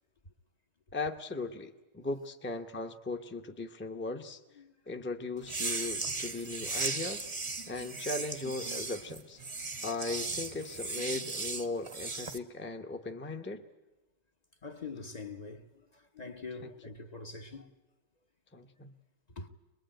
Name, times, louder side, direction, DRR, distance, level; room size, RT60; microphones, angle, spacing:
voice 1, 0.9-4.4 4.9-7.3 7.7-9.4 9.8-13.6 18.5-18.9, left 3 dB, 10° left, 0.8 m, -38 dB
sound 1, 5.4-12.4, right 3 dB, 30° right, 0.9 m, -37 dB
voice 2, 14.6-17.7 19.3-19.5, left 4 dB, 40° left, 1.0 m, -44 dB
23.5 x 21.5 x 9.0 m
omnidirectional pair, 1.2 m